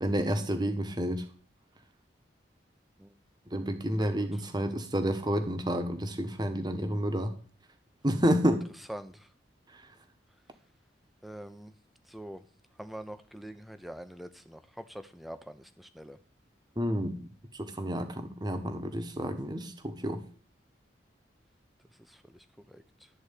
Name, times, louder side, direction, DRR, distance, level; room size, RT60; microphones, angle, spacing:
voice 1, 0.0-1.2 3.5-7.3 8.0-8.6 16.8-17.3 17.5-20.2, equal, 25° right, 7 dB, 1.2 m, -30 dB
voice 2, 4.0-4.4 8.9-9.3 11.2-11.7 12.1-12.4 12.8-16.2 22.0-23.1, right 1 dB, ahead, 10 dB, 0.7 m, -45 dB
12.5 x 4.3 x 8.3 m, 0.42 s
head